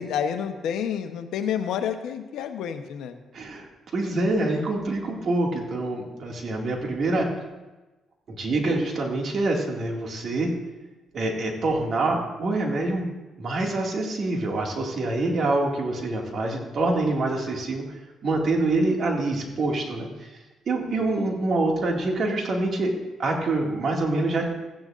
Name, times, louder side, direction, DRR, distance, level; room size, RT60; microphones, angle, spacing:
voice 1, 0.0-3.2 20.9-21.2, left 8 dB, 85° left, 7 dB, 0.9 m, -29 dB
voice 2, 3.3-3.7 3.9-7.3 8.3-10.6 11.1-13.1 13.4-17.8 18.2-20.3 20.7-22.9 23.2-24.5, right 2 dB, 55° right, 0 dB, 2.1 m, -25 dB
15.0 x 10.5 x 2.5 m, 1.1 s
cardioid pair, 90°, 0 cm